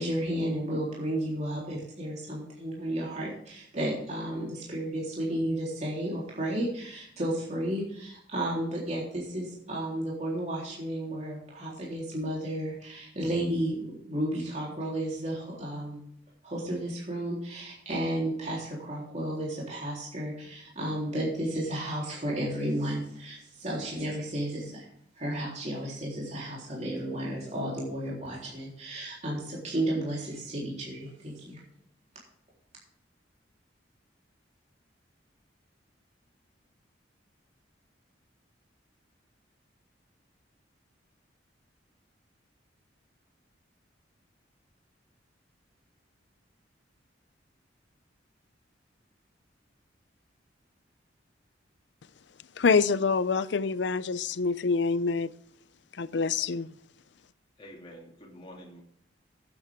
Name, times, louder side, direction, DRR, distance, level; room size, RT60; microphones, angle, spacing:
voice 1, 0.0-16.0 16.4-24.8 25.2-31.6, right 1 dB, 40° right, 3.7 m, -33 dB
voice 2, 52.6-55.3 56.0-56.7, left 5 dB, 70° left, 0.5 m, -26 dB
voice 3, 57.6-58.8, equal, 30° left, 2.6 m, -47 dB
15.0 x 8.7 x 3.6 m
head